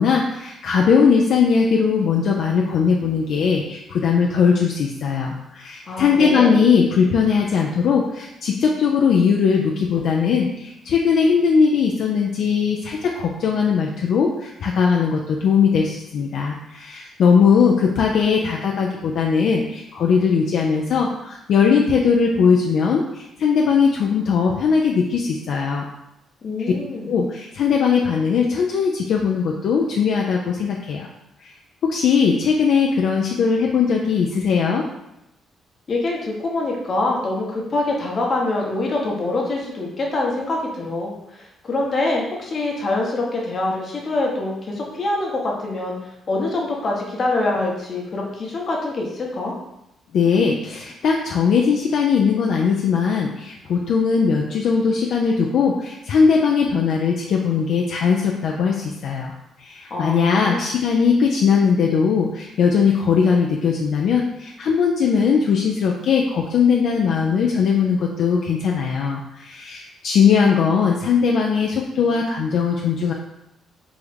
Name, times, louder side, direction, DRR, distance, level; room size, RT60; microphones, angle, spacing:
voice 1, 0.0-25.8 27.1-31.1 31.8-34.9 50.1-59.3 59.6-73.1, left 6 dB, 70° left, -1 dB, 0.3 m, -19 dB
voice 2, 5.9-6.6 26.4-27.1 35.9-46.0 46.3-49.5 59.9-60.7, left 2 dB, 45° left, -1 dB, 0.8 m, -25 dB
3.5 x 2.1 x 3.2 m, 0.86 s
cardioid pair, 90°, 0 cm